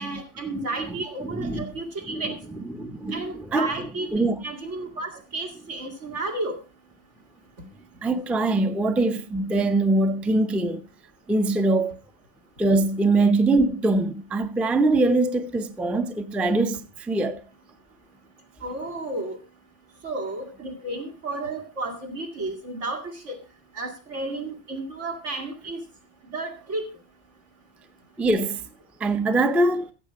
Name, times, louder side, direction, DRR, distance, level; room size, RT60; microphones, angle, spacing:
voice 1, 0.0-2.4 3.1-6.6 18.6-19.4 20.0-23.4 23.7-25.8 26.3-26.9, right 2 dB, 85° right, 2.7 m, -32 dB
voice 2, 0.8-1.7 2.1-2.3 2.8-3.7 4.1-4.4 8.0-10.8 11.3-12.0 12.6-17.4 28.2-28.6 29.0-29.9, right 2 dB, ahead, 0.5 m, -23 dB
15.0 x 7.4 x 4.7 m
omnidirectional pair, 1.2 m